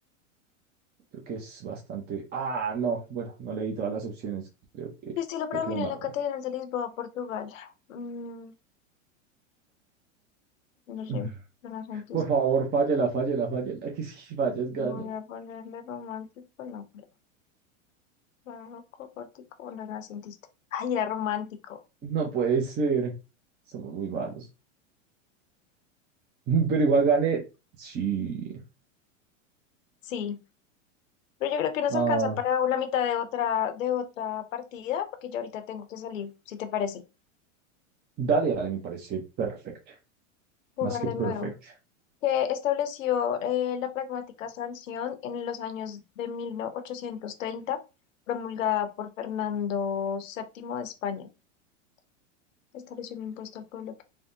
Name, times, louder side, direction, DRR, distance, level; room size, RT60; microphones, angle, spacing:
voice 1, 1.1-4.4 4.7-5.1 5.7-5.9 11.1-11.3 12.1-15.1 22.0-23.1 23.7-24.4 26.5-27.4 27.8-28.6 31.9-32.4 38.2-39.9 40.8-41.7, right 5 dB, 25° right, 0.7 m, -28 dB
voice 2, 5.2-8.5 10.9-11.3 11.6-12.2 14.8-17.0 18.5-20.4 20.7-21.8 30.0-30.4 31.4-37.0 40.8-41.5 42.2-47.8 48.3-51.3 52.7-54.0, left 9 dB, 80° left, 0.7 m, -31 dB
3.4 x 2.2 x 2.6 m
hypercardioid pair, 110°, 38 cm